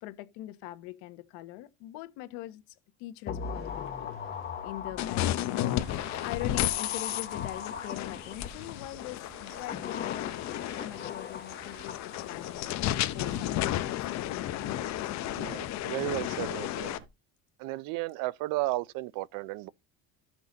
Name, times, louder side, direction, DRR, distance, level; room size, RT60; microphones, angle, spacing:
voice 1, 0.0-2.6 3.0-15.1, left 16 dB, 90° left, 1.2 m, -43 dB
sound 1, 3.3-8.7 9.4-12.6 12.9-13.0, left 7 dB, 30° left, 1.0 m, -40 dB
sound 2, 3.5-17.1, right 6 dB, 35° right, 1.4 m, -52 dB
sound 3, 5.0-17.0, left 13 dB, 50° left, 0.8 m, -33 dB
voice 2, 15.3-17.0 17.6-19.7, right 18 dB, 65° right, 0.6 m, -34 dB
14.0 x 6.1 x 3.9 m
cardioid pair, 155°, 36 cm